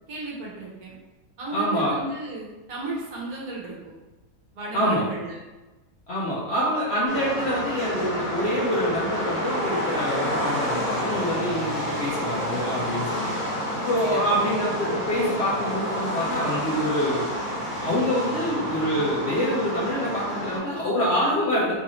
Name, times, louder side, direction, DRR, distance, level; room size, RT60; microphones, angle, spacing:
voice 1, 0.1-0.9 1.4-3.7 4.5-5.4 14.0-14.2, right 2 dB, 65° right, -4 dB, 1.4 m, -34 dB
voice 2, 1.5-2.0 4.7-5.0 6.1-13.3 13.8-17.3 17.8-21.7, equal, 55° left, -6 dB, 0.8 m, -26 dB
sound 1, 7.1-20.6, equal, 20° left, 1.4 m, -29 dB
4.0 x 2.6 x 3.0 m, 1.1 s
omnidirectional pair, 1.7 m